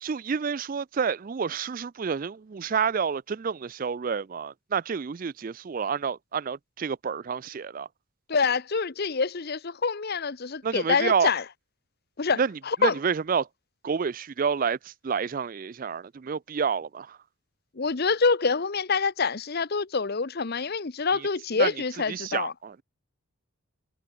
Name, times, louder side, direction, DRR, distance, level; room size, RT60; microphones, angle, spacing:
voice 1, 0.0-7.9 10.6-11.3 12.4-12.5 12.8-13.5 13.8-17.2 21.1-21.3 21.6-21.7 22.1-22.8, right 6 dB, 40° right, 0.4 m, -29 dB
voice 2, 8.3-11.4 12.2-12.4 12.7-13.0 17.8-22.5, left 4 dB, 45° left, 0.7 m, -26 dB
head